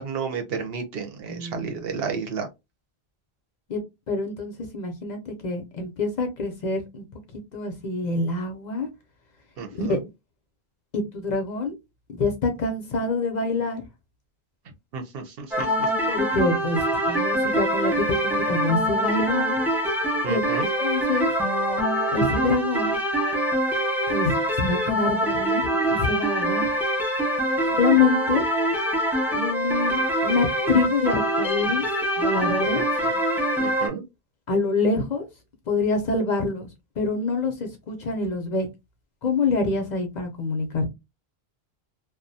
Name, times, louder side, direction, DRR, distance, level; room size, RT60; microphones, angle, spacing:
voice 1, 0.0-2.5 9.6-10.0 14.9-15.9 20.2-20.7 32.7-33.1 33.6-34.0, right 5 dB, 70° right, 0.8 m, -32 dB
voice 2, 1.3-1.7 3.7-3.8 4.1-7.0 7.3-8.9 9.7-10.0 10.9-11.7 12.1-13.8 16.1-19.6 20.3-20.5 20.8-21.3 22.1-23.0 24.1-26.7 27.7-28.4 29.3-31.8 32.2-32.8 34.5-35.3 35.7-36.7 37.0-38.7 39.2-40.9, left 3 dB, 55° left, 0.6 m, -26 dB
sound 1, 15.5-33.9, right 1 dB, 5° right, 0.3 m, -24 dB
2.3 x 2.1 x 2.6 m
omnidirectional pair, 1.0 m